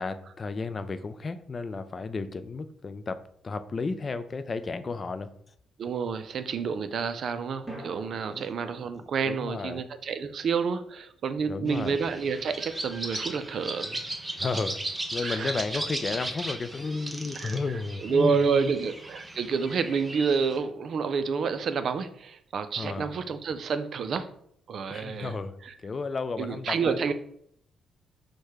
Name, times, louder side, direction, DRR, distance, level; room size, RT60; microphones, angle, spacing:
voice 1, 0.0-5.3 8.3-8.5 9.3-9.9 11.5-12.0 14.3-14.8 15.1-18.7 22.8-23.2 24.9-25.6 25.8-27.1, left 4 dB, 35° left, 0.3 m, -33 dB
voice 2, 5.8-14.0 15.2-15.6 17.4-17.6 18.0-24.3 24.7-25.3 25.6-25.7 26.4-27.1, right 5 dB, 60° right, 0.4 m, -29 dB
sound 1, 7.7-12.0, right 1 dB, 5° left, 1.5 m, -49 dB
sound 2, 11.7-20.6, right 1 dB, 15° right, 0.7 m, -37 dB
4.5 x 2.2 x 4.7 m
cardioid pair, 90°, 0 cm